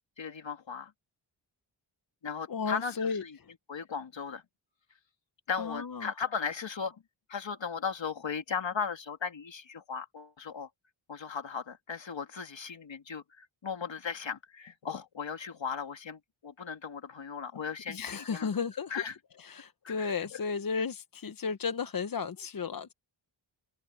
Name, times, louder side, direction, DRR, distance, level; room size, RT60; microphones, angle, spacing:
voice 1, 0.2-0.9 2.2-3.4 3.7-4.4 5.5-7.0 7.3-10.7 11.1-18.5 18.9-19.2 19.8-20.4, left 6 dB, 60° left, 2.4 m, -37 dB
voice 2, 2.5-3.2 5.6-6.1 17.9-18.9 19.4-22.9, left 5 dB, 45° left, 0.9 m, -34 dB
wide cardioid pair, 90°, 50 cm